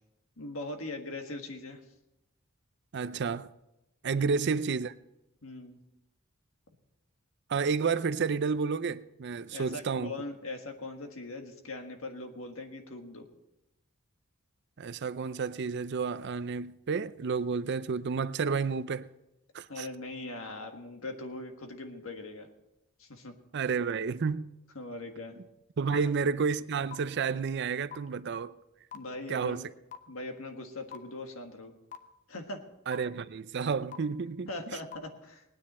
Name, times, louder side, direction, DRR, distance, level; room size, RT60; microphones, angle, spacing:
voice 1, 0.4-1.8 4.1-4.3 5.4-5.8 9.5-13.3 19.7-22.5 23.0-23.3 24.7-25.3 25.9-26.0 28.9-29.6 30.1-31.7 32.3-32.6 34.5-35.4, left 2 dB, 75° left, 1.7 m, -40 dB
voice 2, 2.9-3.5 4.0-4.9 7.5-10.1 14.8-19.1 19.5-19.9 23.5-24.5 25.8-28.5 29.3-29.6 32.9-34.8, right 5 dB, 55° right, 0.5 m, -31 dB
sound 1, 25.9-26.0 26.9-27.0 27.9-28.0 28.9-29.0 29.9-30.0 30.9-31.0 31.9-32.0 32.9-33.0 33.9-34.0 34.9-35.0, left 10 dB, 40° left, 0.9 m, -40 dB
19.0 x 9.8 x 4.3 m
head